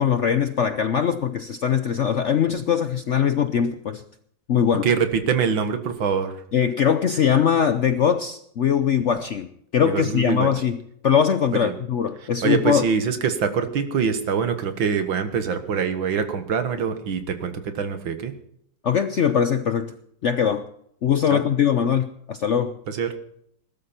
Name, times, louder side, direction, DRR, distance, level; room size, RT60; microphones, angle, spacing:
voice 1, 0.0-4.0 4.5-4.9 6.5-12.9 18.8-19.9 20.2-20.6 21.0-22.8, left 8 dB, 65° left, 10 dB, 0.7 m, -21 dB
voice 2, 4.8-6.3 9.9-10.5 11.5-11.7 12.4-18.3 21.3-21.4 22.9-23.1, right 6 dB, 90° right, 9 dB, 2.2 m, -24 dB
20.0 x 12.5 x 4.4 m, 0.69 s
omnidirectional pair, 2.0 m